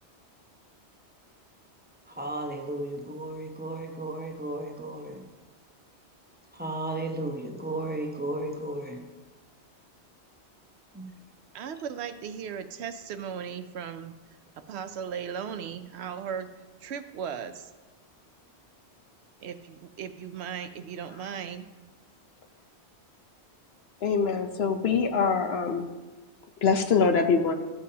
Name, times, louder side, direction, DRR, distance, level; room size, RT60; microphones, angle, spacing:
voice 1, 2.1-5.2 6.5-9.0 10.9-11.0, right 2 dB, 10° right, 2 dB, 0.8 m, -34 dB
voice 2, 11.5-14.1 14.7-16.5 16.8-17.7 19.4-21.7, right 7 dB, 75° right, 10 dB, 0.8 m, -37 dB
voice 3, 24.0-25.9 26.6-27.5, left 5 dB, 65° left, 6 dB, 1.0 m, -24 dB
14.0 x 7.2 x 2.8 m, 1.2 s
omnidirectional pair, 1.1 m